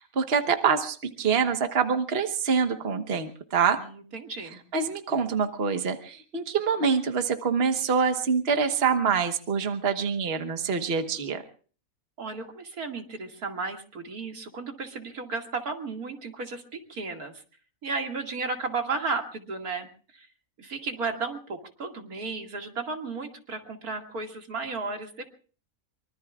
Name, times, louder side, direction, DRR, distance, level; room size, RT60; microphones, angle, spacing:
voice 1, 0.0-3.8 4.7-11.4, right 6 dB, 45° right, 7 dB, 1.4 m, -25 dB
voice 2, 3.8-4.6 12.2-17.4 17.8-20.3 20.6-25.3, right 4 dB, 85° right, 3 dB, 2.7 m, -34 dB
24.5 x 24.0 x 2.4 m, 0.41 s
omnidirectional pair, 1.5 m